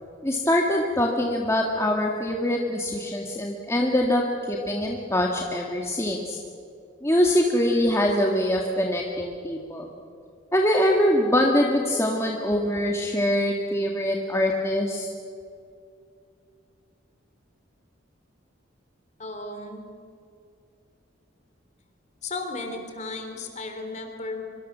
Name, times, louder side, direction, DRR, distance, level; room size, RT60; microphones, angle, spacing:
voice 1, 0.2-6.4 7.0-9.9 10.5-15.1, left 1 dB, 15° left, 0 dB, 1.7 m, -23 dB
voice 2, 19.2-19.8 22.2-24.4, left 3 dB, 35° left, 5 dB, 3.5 m, -34 dB
24.5 x 24.0 x 7.4 m, 2.4 s
head